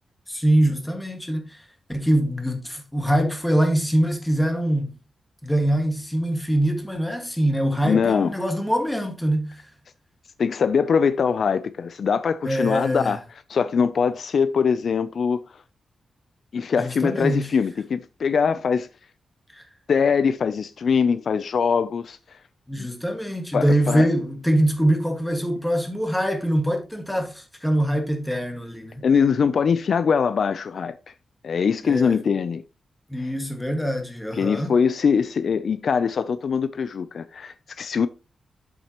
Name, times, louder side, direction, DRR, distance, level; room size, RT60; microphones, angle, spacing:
voice 1, 0.3-1.6 1.9-4.9 5.4-9.6 12.4-13.2 16.8-17.5 19.5-19.6 22.7-29.1 31.8-32.2 33.1-34.7, right 1 dB, 5° left, 1.8 m, -23 dB
voice 2, 7.8-8.3 10.4-13.2 13.5-15.4 16.5-18.9 19.9-22.2 22.8-22.9 23.5-24.1 29.0-30.9 31.4-32.6 34.4-38.1, left 6 dB, 60° left, 0.4 m, -22 dB
8.3 x 7.3 x 2.9 m
wide cardioid pair, 110°, 0 cm